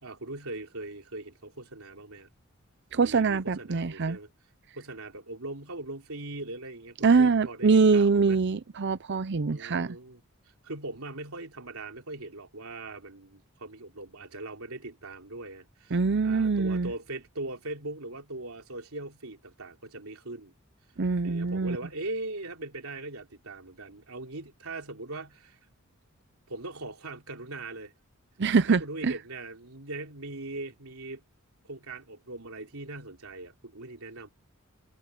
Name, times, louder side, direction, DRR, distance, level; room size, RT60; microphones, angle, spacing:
voice 1, 0.0-2.3 2.9-4.3 4.7-8.4 9.5-10.2 10.6-20.5 21.2-25.6 26.5-27.9 28.7-31.2 31.6-34.3, right 2 dB, 90° right, 3.2 m, -40 dB
voice 2, 2.9-4.2 7.0-10.0 15.9-16.9 21.0-21.8 28.4-29.1, right 4 dB, 55° right, 0.6 m, -24 dB
head